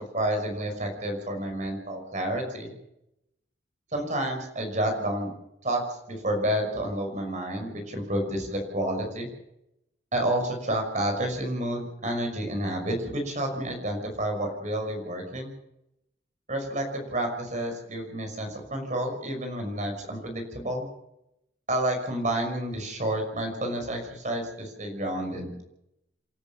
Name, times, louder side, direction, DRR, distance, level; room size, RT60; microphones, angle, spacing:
voice 1, 0.0-2.7 3.9-5.3 5.6-9.3 10.1-15.5 16.5-20.9 21.7-25.5, right 1 dB, 40° right, 4 dB, 5.9 m, -30 dB
28.0 x 13.5 x 7.0 m, 0.83 s
head